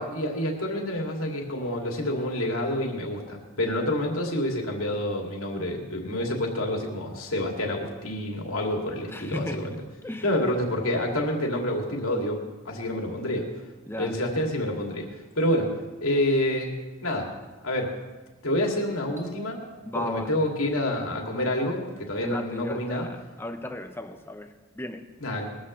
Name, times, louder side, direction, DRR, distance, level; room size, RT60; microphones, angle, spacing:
voice 1, 0.0-9.8 10.2-13.5 14.0-15.7 16.0-16.7 17.0-17.3 17.6-17.9 18.4-19.6 19.9-23.1 25.2-25.5, left 1 dB, 90° left, 0 dB, 2.6 m, -28 dB
voice 2, 9.1-9.8 10.0-10.4 13.9-14.2 19.8-20.4 22.2-25.1, left 1 dB, 10° left, 7 dB, 0.7 m, -36 dB
sound 1, 19.2-20.4, right 5 dB, 15° right, 1.7 m, -48 dB
21.5 x 14.0 x 3.2 m, 1.2 s
head